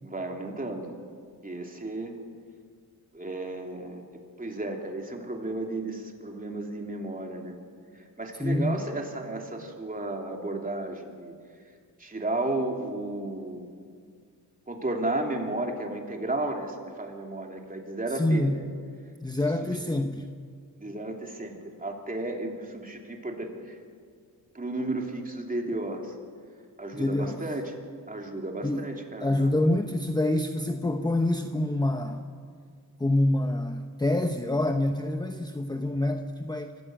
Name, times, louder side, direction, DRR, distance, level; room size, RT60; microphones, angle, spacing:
voice 1, 0.0-0.9 1.4-2.1 3.1-7.6 7.9-11.3 12.0-13.7 14.7-18.6 19.6-19.7 20.8-23.8 24.5-26.1 26.8-29.7, right 2 dB, 20° right, 2 dB, 3.1 m, -33 dB
voice 2, 8.4-8.8 18.1-18.6 19.2-20.3 26.9-27.4 28.6-28.9 29.2-32.2 33.0-36.8, left 1 dB, 10° left, 6 dB, 0.9 m, -26 dB
25.0 x 15.0 x 7.8 m, 2.1 s
cardioid pair, 90°, 38 cm